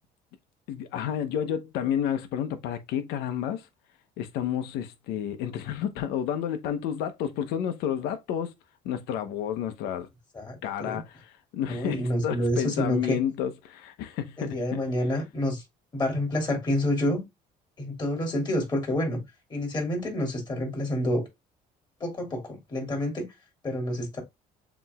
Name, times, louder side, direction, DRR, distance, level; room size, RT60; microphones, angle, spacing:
voice 1, 0.7-3.7 4.2-8.5 8.8-10.1 10.6-14.8, left 9 dB, 85° left, 0.9 m, -30 dB
voice 2, 10.3-11.0 11.7-13.2 14.4-15.6 15.9-17.2 17.8-19.2 19.5-21.2 22.0-23.2 23.6-24.2, left 1 dB, 25° left, 2.8 m, -28 dB
7.1 x 3.1 x 2.3 m
cardioid pair, 115°, 16 cm